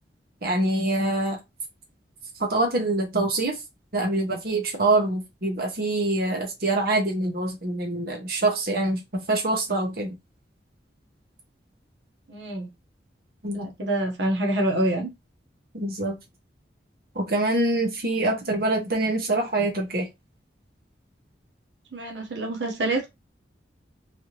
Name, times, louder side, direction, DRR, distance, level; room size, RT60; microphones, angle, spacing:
voice 1, 0.4-1.4 2.4-3.6 3.9-10.2 13.4-13.7 15.7-16.2 17.1-20.1, right 2 dB, 55° right, 1.0 m, -25 dB
voice 2, 12.3-12.7 13.5-15.1 21.9-23.1, right 1 dB, 85° right, 1.0 m, -26 dB
3.4 x 2.8 x 2.9 m
head